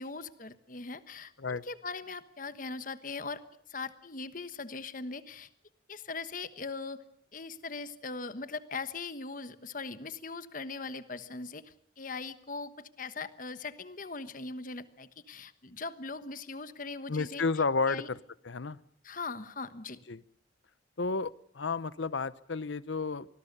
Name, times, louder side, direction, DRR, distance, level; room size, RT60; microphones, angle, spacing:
voice 1, 0.0-3.4 3.7-5.5 5.9-7.0 7.3-17.4 17.9-18.1 19.0-20.0, left 4 dB, 45° left, 12 dB, 1.2 m, -40 dB
voice 2, 17.1-18.2 18.4-18.8 20.1-20.2 21.0-23.3, left 4 dB, 90° left, 18 dB, 0.8 m, -31 dB
25.5 x 20.0 x 6.7 m, 0.67 s
head